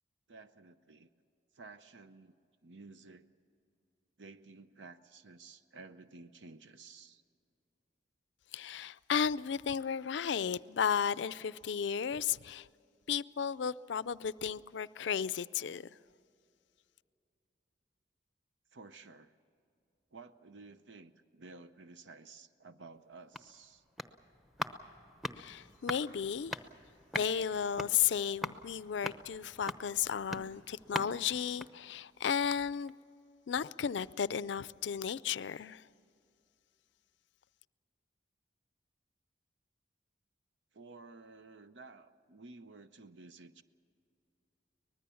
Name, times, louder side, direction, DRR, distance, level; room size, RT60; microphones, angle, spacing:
voice 1, 0.3-1.1 1.5-2.4 2.6-3.3 4.2-7.2 18.7-19.4 20.1-23.8 40.7-43.6, right 3 dB, 80° right, 0.7 m, -53 dB
voice 2, 8.5-12.7 13.1-16.0 25.4-26.6 27.1-32.9 33.5-35.8, left 7 dB, 70° left, 0.4 m, -34 dB
sound 1, 23.0-32.5 32.9-33.0, left 1 dB, ahead, 0.8 m, -43 dB
24.5 x 20.0 x 7.0 m
head